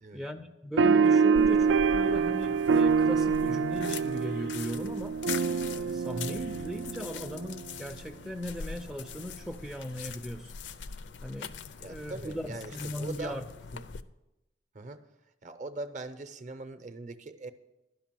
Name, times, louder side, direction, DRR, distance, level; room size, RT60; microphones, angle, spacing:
voice 1, 0.1-5.2 5.7-10.5 11.2-11.6 11.8-13.5 13.7-13.8, equal, ahead, 3 dB, 0.3 m, -38 dB
sound 1, 0.8-7.6, right 5 dB, 85° right, 0.3 m, -26 dB
sound 2, 1.3-14.0, left 6 dB, 70° left, 0.5 m, -43 dB
voice 2, 11.8-13.4 14.7-15.0 15.4-17.5, right 2 dB, 40° right, 10 dB, 0.6 m, -41 dB
12.0 x 5.4 x 7.4 m, 0.96 s
head